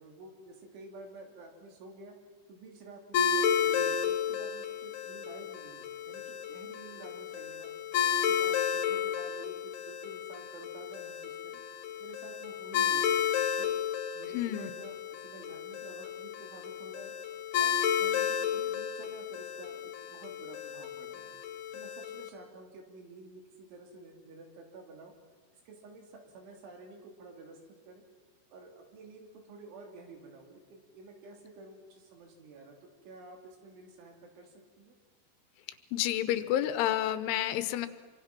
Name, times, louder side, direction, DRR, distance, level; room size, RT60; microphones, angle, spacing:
voice 1, 0.0-2.2 2.5-7.7 8.1-11.5 12.0-13.7 14.1-17.1 17.6-21.4 21.7-25.1 25.7-27.6 27.8-28.0 28.5-35.0, right 2 dB, 75° right, 2 dB, 5.3 m, -50 dB
sound 1, 3.1-22.3, left 8 dB, 65° left, 2.9 m, -32 dB
voice 2, 14.3-14.7 35.9-37.9, left 12 dB, 80° left, 12 dB, 3.4 m, -29 dB
26.5 x 24.5 x 6.0 m, 1.5 s
omnidirectional pair, 5.5 m